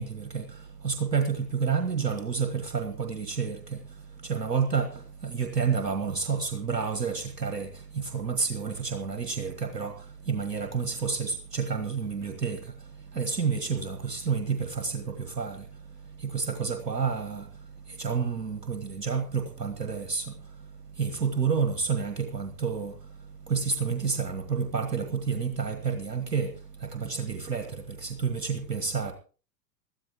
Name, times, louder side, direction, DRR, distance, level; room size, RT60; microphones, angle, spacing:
voice 1, 0.0-29.1, right 5 dB, 75° right, 1.6 m, -30 dB
21.0 x 13.0 x 3.0 m
figure-of-eight pair, 105°, 49 cm